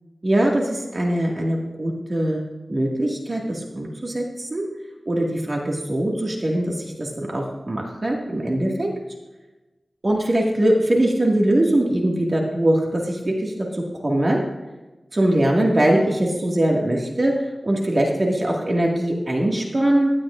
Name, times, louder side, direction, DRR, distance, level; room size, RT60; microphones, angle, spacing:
voice 1, 0.2-2.4 2.7-4.6 5.1-8.9 10.0-14.4 15.1-17.3 17.6-20.1, right 1 dB, 45° right, -1 dB, 2.0 m, -21 dB
16.5 x 11.0 x 2.6 m, 1.1 s
wide cardioid pair, 80°, 0 cm